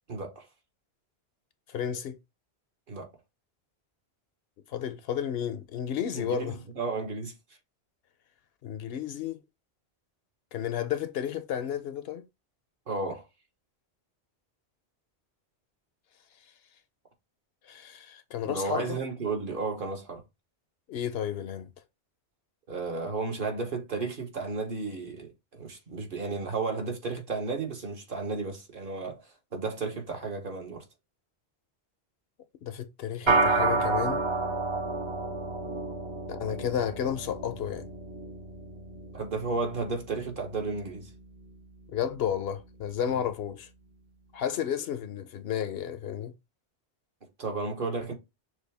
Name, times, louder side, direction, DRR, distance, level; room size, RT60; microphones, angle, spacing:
voice 1, 0.1-0.4 2.9-3.1 6.1-7.3 12.9-13.2 18.4-20.2 22.7-29.2 29.5-30.8 39.1-41.1 43.1-43.2 47.4-48.1, right 3 dB, 55° right, 1.3 m, -33 dB
voice 2, 1.7-2.2 4.7-6.6 8.6-9.4 10.5-12.2 17.7-19.0 20.9-21.7 32.6-34.2 36.3-37.9 41.9-43.7 44.3-46.3, left 9 dB, 70° left, 0.8 m, -32 dB
sound 1, 33.3-42.8, right 3 dB, 35° right, 0.6 m, -31 dB
6.4 x 2.3 x 3.4 m
omnidirectional pair, 1.1 m